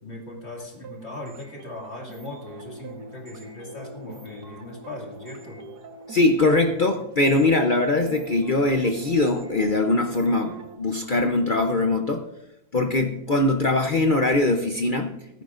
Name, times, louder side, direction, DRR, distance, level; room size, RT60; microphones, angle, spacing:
voice 1, 0.0-5.6, left 1 dB, 35° left, -1 dB, 2.5 m, -38 dB
sound 1, 0.6-10.8, right 5 dB, 60° right, 1.8 m, -44 dB
voice 2, 6.1-12.2 12.7-15.4, left 2 dB, 75° left, 4 dB, 0.4 m, -22 dB
16.5 x 14.5 x 2.5 m, 0.85 s
omnidirectional pair, 2.0 m